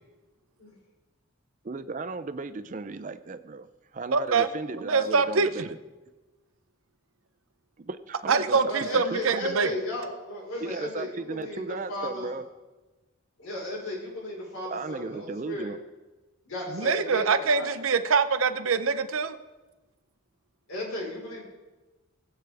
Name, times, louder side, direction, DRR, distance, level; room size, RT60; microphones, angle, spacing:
voice 1, 1.6-5.8 7.8-9.4 10.6-12.5 14.7-15.8, right 3 dB, 35° right, 11 dB, 0.4 m, -36 dB
voice 2, 4.1-4.5 4.9-5.7 8.3-9.7 16.7-19.4, right 5 dB, 75° right, 10 dB, 0.7 m, -24 dB
voice 3, 8.7-12.3 13.4-15.7 16.5-17.7 20.7-21.4, left 1 dB, 85° left, -3 dB, 4.4 m, -35 dB
19.0 x 8.1 x 3.4 m, 1.2 s
head